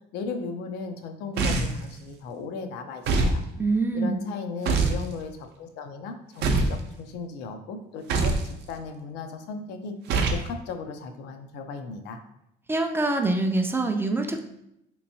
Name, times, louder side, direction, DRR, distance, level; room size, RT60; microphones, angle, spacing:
voice 1, 0.1-3.4 3.9-10.0 10.3-12.2, left 4 dB, 85° left, 6 dB, 0.5 m, -36 dB
sound 1, 1.4-1.9 3.1-3.4 4.7-5.0 6.4-6.8 8.1-8.5 10.1-10.5, right 3 dB, 75° right, 0.5 m, -23 dB
voice 2, 3.6-4.2 12.7-14.5, right 2 dB, 15° right, 4 dB, 0.3 m, -25 dB
3.3 x 3.0 x 2.7 m, 0.82 s
cardioid pair, 110°, 17 cm